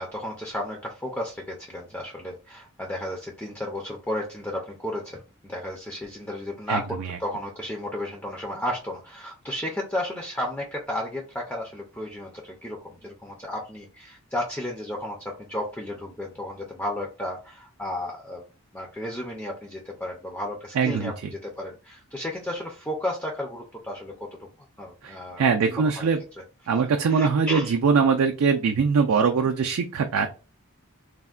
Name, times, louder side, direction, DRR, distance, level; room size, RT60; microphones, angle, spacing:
voice 1, 0.0-18.4 18.7-24.5 24.8-26.1 26.8-27.8, left 1 dB, 10° left, -1 dB, 0.4 m, -33 dB
voice 2, 6.7-7.2 20.8-21.1 25.0-26.2 26.7-30.3, right 5 dB, 70° right, 3 dB, 0.4 m, -22 dB
3.3 x 2.1 x 2.3 m, 0.33 s
head